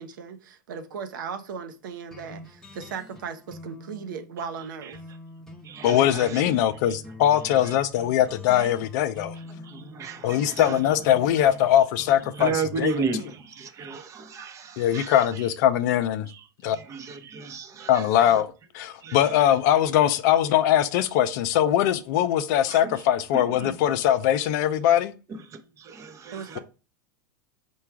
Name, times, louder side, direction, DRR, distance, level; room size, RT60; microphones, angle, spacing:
voice 1, 0.0-5.0 26.3-26.6, right 6 dB, 80° right, 0.7 m, -37 dB
sound 1, 2.1-13.4, left 1 dB, 5° left, 0.8 m, -46 dB
voice 2, 4.6-5.2 5.6-7.0 7.3-8.1 8.5-8.7 9.2-11.6 12.1-15.5 15.9-16.0 16.3-18.4 19.0-19.6 22.6-24.0 25.3-26.6, right 5 dB, 30° right, 0.8 m, -36 dB
voice 3, 5.8-9.3 10.2-12.5 12.8-12.9 14.8-16.3 16.6-16.8 17.9-18.5 18.7-25.1, left 11 dB, 60° left, 0.5 m, -21 dB
4.6 x 2.3 x 4.6 m
hypercardioid pair, 115°, 11 cm